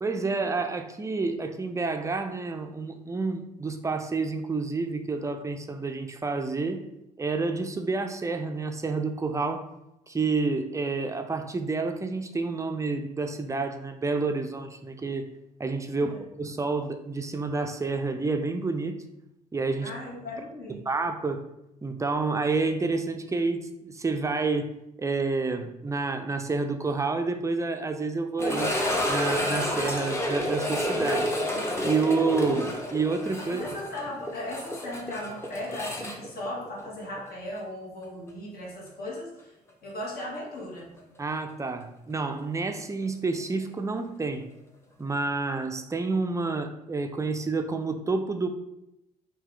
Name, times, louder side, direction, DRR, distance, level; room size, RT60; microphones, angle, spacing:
voice 1, 0.0-6.8 7.2-9.7 10.1-15.3 15.6-19.0 19.5-19.9 20.9-21.4 21.8-28.8 29.1-31.3 31.8-33.6 41.2-44.5 45.0-48.5, right 3 dB, 15° right, 7 dB, 0.4 m, -29 dB
voice 2, 15.9-16.2 19.8-20.8 33.4-39.5 39.8-40.9, left 1 dB, 50° left, -3 dB, 1.3 m, -37 dB
sound 1, 28.4-37.3 37.6-37.7 38.3-38.4 41.0-41.1, equal, 15° left, 0.8 m, -29 dB
3.5 x 2.8 x 3.3 m, 0.86 s
hypercardioid pair, 55°, 20 cm